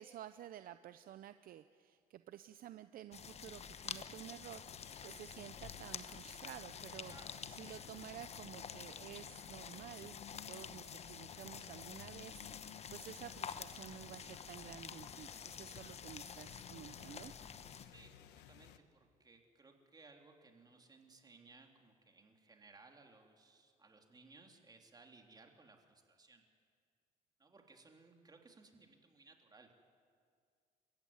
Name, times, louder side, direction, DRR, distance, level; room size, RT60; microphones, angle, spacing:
voice 1, 0.0-7.1 7.5-17.3, right 12 dB, 60° right, 12 dB, 0.7 m, -52 dB
sound 1, 3.1-17.9, left 7 dB, 40° left, 1.0 m, -49 dB
sound 2, 4.6-18.8, left 11 dB, 90° left, 1.2 m, -59 dB
voice 2, 7.1-7.4 17.8-26.4 27.4-29.9, right 3 dB, 25° right, 3 dB, 3.1 m, -62 dB
29.5 x 15.0 x 9.6 m, 2.1 s
cardioid pair, 110°, 17 cm